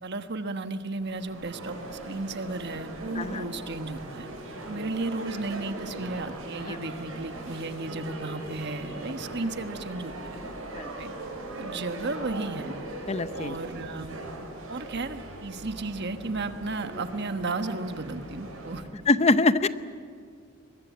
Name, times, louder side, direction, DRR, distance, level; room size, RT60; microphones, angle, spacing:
voice 1, 0.0-4.3 4.6-10.4 11.0-11.1 11.6-12.7 13.3-14.2 14.7-18.8, right 3 dB, 50° right, 8 dB, 1.3 m, -34 dB
sound 1, 1.0-18.8, right 2 dB, 70° right, 7.3 m, -40 dB
voice 2, 13.1-13.5 19.1-19.7, left 3 dB, 30° left, 13 dB, 0.7 m, -24 dB
22.0 x 21.5 x 9.3 m, 2.1 s
head